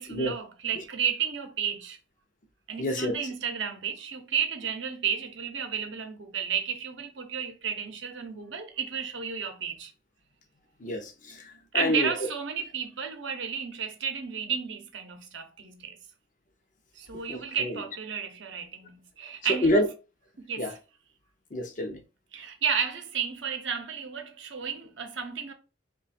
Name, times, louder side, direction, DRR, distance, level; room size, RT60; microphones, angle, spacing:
voice 1, 0.0-2.0 2.7-9.9 11.7-16.0 17.0-19.8 20.4-20.8 22.3-25.5, right 7 dB, 65° right, 0.7 m, -32 dB
voice 2, 2.8-3.2 10.8-12.1 17.3-17.7 19.6-19.9 20.6-20.7 21.5-22.0, left 1 dB, 40° left, 0.5 m, -28 dB
3.1 x 2.2 x 4.1 m
head